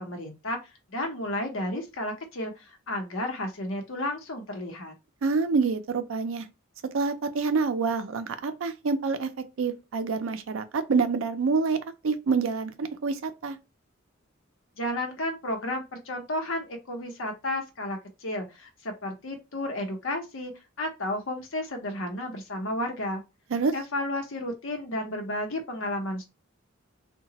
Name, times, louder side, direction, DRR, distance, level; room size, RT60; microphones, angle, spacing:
voice 1, 0.0-4.9 14.8-20.5 20.8-23.2 23.7-26.3, left 1 dB, 75° left, 0.8 m, -32 dB
voice 2, 5.2-6.5 6.9-9.3 9.6-13.6 23.5-23.7, right 4 dB, 80° right, 0.5 m, -27 dB
2.8 x 2.2 x 2.8 m
head